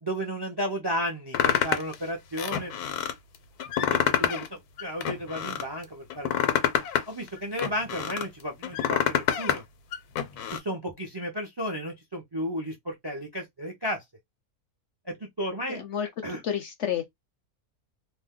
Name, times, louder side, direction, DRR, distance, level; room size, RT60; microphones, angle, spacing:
voice 1, 0.0-2.7 3.8-6.5 7.1-9.6 10.5-14.0 15.1-15.8 16.2-16.4, equal, 35° right, 0.4 m, -33 dB
sound 1, 1.3-1.9 2.4-3.1 3.6-4.5 4.8-5.6 6.1-8.2 8.6-9.6 9.9-10.6, left 9 dB, 90° left, 1.1 m, -26 dB
voice 2, 15.7-16.1 16.4-17.1, left 9 dB, 65° left, 0.8 m, -30 dB
2.6 x 2.2 x 3.5 m
omnidirectional pair, 1.6 m